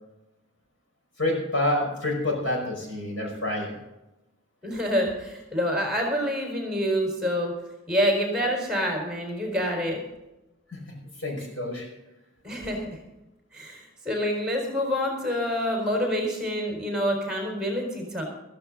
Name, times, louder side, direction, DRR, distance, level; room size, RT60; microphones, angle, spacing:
voice 1, 1.2-3.8 10.7-11.9, left 1 dB, 70° left, 1 dB, 5.4 m, -28 dB
voice 2, 4.6-7.5 7.9-10.0 12.4-12.8 13.5-18.2, equal, 5° right, 1 dB, 4.3 m, -27 dB
14.5 x 14.5 x 3.9 m, 0.96 s
head